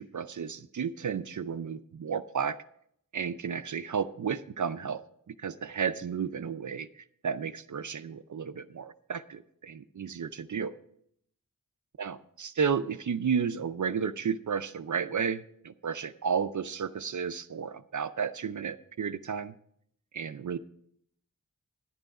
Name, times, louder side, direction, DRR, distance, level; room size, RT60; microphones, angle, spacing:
voice 1, 0.0-2.6 3.1-5.0 5.3-10.7 12.0-19.5 20.1-20.6, right 6 dB, 55° right, 12 dB, 0.5 m, -32 dB
11.0 x 9.2 x 4.8 m, 0.68 s
wide cardioid pair, 95°, 35 cm